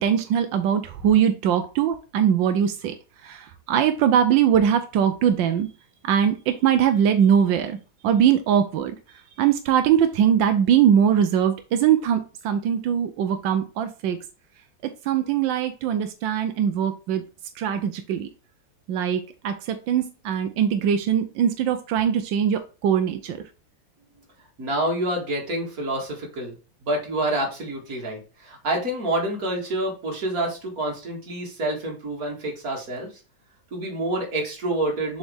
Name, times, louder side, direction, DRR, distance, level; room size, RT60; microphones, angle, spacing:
voice 1, 0.0-2.9 3.2-5.7 6.0-7.8 8.0-9.0 9.4-14.2 14.8-17.2 17.6-18.3 18.9-23.4, right 9 dB, 90° right, 8 dB, 1.4 m, -21 dB
voice 2, 24.6-26.5 26.8-33.1 33.7-35.2, right 1 dB, 55° right, 0 dB, 2.4 m, -27 dB
7.1 x 4.2 x 3.4 m, 0.33 s
omnidirectional pair, 2.0 m